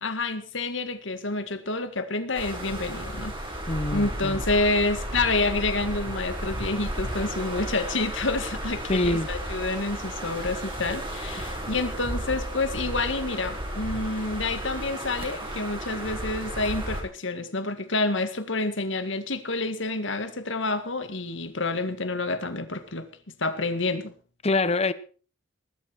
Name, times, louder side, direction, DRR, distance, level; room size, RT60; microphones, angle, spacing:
voice 1, 0.0-3.3 3.9-23.1 23.4-24.1, left 3 dB, 70° left, 2.0 m, -28 dB
sound 1, 2.3-17.0, right 1 dB, 25° right, 4.7 m, -33 dB
voice 2, 3.7-4.4 8.9-9.3 24.4-24.9, left 2 dB, 30° left, 0.9 m, -25 dB
19.5 x 12.5 x 4.7 m
head